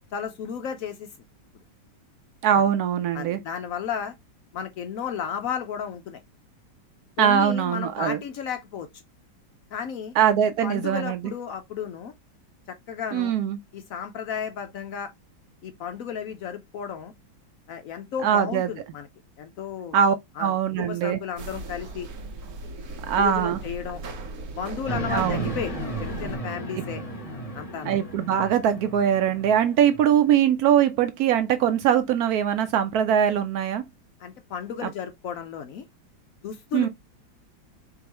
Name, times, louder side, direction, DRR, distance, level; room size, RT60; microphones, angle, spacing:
voice 1, 0.1-1.1 2.5-2.7 3.1-4.1 4.5-6.2 7.2-8.9 9.7-10.1 10.6-12.1 12.7-13.3 13.7-15.1 15.6-17.1 17.7-19.1 19.4-20.0 20.4-22.1 23.2-24.0 24.5-27.0 27.5-27.9 34.2-35.8 36.4-36.9, left 7 dB, 80° left, 0.7 m, -33 dB
voice 2, 2.4-3.4 7.2-8.2 10.2-11.2 13.1-13.6 18.2-18.7 19.9-21.2 23.1-23.6 25.1-25.5 27.8-33.8 36.7-36.9, right 9 dB, 90° right, 0.8 m, -22 dB
sound 1, 21.4-26.4, right 2 dB, 60° right, 1.2 m, -38 dB
sound 2, 24.9-30.3, right 1 dB, 25° left, 0.9 m, -35 dB
4.7 x 3.0 x 2.9 m
omnidirectional pair, 2.2 m